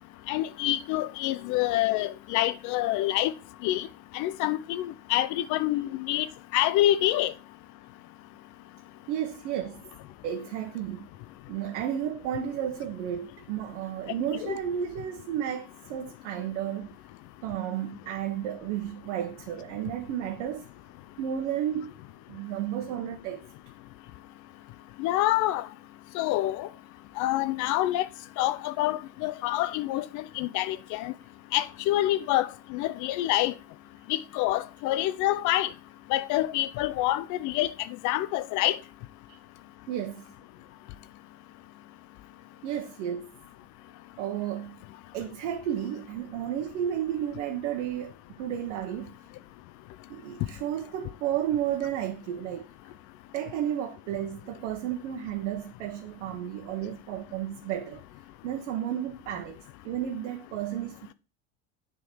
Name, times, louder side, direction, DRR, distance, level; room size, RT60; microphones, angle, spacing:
voice 1, 0.3-3.3 3.6-3.9 4.1-6.3 6.5-7.3 14.4-14.6 25.0-25.7 26.1-26.7 27.2-28.1 28.4-31.1 31.5-33.5 34.1-35.7 36.1-37.7 38.0-38.8, left 15 dB, 55° left, 0.5 m, -27 dB
voice 2, 9.1-9.8 10.2-11.1 11.5-17.0 17.4-20.6 21.2-21.9 22.3-23.4 39.9-40.2 42.6-43.3 44.2-44.8 45.1-49.2 50.1-52.7 53.3-58.0 58.4-59.6 59.8-61.1, right 10 dB, 80° right, 1.0 m, -32 dB
6.9 x 3.8 x 6.0 m
supercardioid pair, 120°, 35 cm